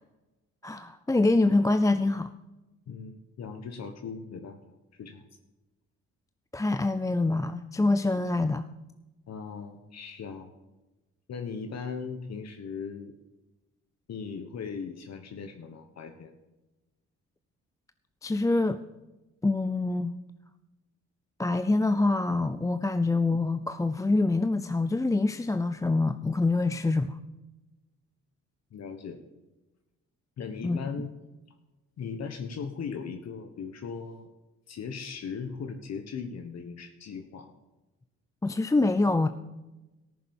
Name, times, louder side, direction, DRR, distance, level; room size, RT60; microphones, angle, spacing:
voice 1, 0.6-2.3 6.5-8.7 18.2-18.8 19.4-20.1 21.4-27.2 30.6-31.1 38.4-39.3, left 2 dB, 10° left, 10 dB, 0.5 m, -25 dB
voice 2, 2.9-4.6 5.0-5.3 9.3-10.5 11.3-13.1 14.1-16.3 28.7-29.2 30.4-31.1 32.0-34.3 34.7-37.5, left 5 dB, 60° left, 6 dB, 1.4 m, -38 dB
14.0 x 7.1 x 7.2 m, 1.1 s
cardioid pair, 90°, 30 cm